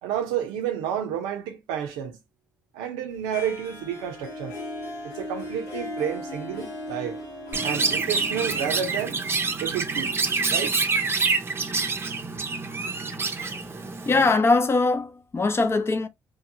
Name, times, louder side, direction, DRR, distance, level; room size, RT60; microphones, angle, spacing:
voice 1, 0.0-2.2 2.7-4.6 5.0-7.2 7.6-9.2 9.6-10.2 10.5-10.8, right 9 dB, 90° right, 0.6 m, -30 dB
Harp, 3.3-10.2, left 1 dB, 85° left, 0.9 m, -37 dB
Chirp tweet, 7.5-14.4, right 4 dB, 30° right, 0.6 m, -27 dB
voice 2, 14.1-16.1, left 3 dB, 35° left, 0.6 m, -21 dB
2.8 x 2.2 x 2.5 m
hypercardioid pair, 50°, 7 cm